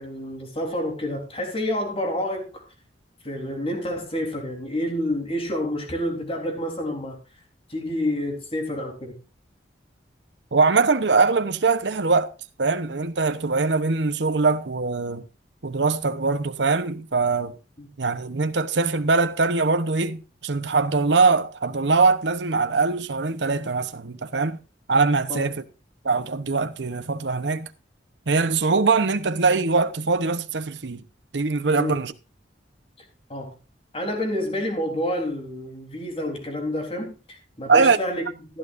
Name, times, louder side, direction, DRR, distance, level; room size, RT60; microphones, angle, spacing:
voice 1, 0.0-2.6 3.2-7.2 7.7-9.1 17.8-17.9 25.3-25.5 31.8-32.0 33.3-33.5 33.9-38.6, left 1 dB, 30° left, 3.7 m, -29 dB
voice 2, 10.5-12.3 12.6-15.2 15.6-17.5 18.0-24.6 24.9-25.6 26.0-27.7 28.3-31.0 31.3-32.1 37.7-38.0, right 4 dB, 70° right, 0.9 m, -22 dB
15.0 x 11.5 x 2.6 m
head